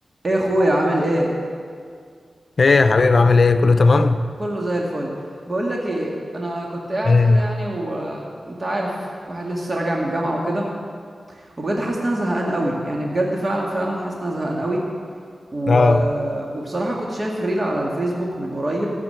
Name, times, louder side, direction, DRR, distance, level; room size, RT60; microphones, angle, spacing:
voice 1, 0.2-1.3 4.4-5.1 5.5-10.7 11.3-14.8 15.5-18.9, right 1 dB, 40° right, -2 dB, 2.2 m, -24 dB
voice 2, 2.6-4.2 7.1-7.4 15.7-16.1, left 3 dB, 55° left, 10 dB, 0.7 m, -15 dB
14.5 x 7.8 x 9.1 m, 2.1 s
cardioid pair, 60°, 0 cm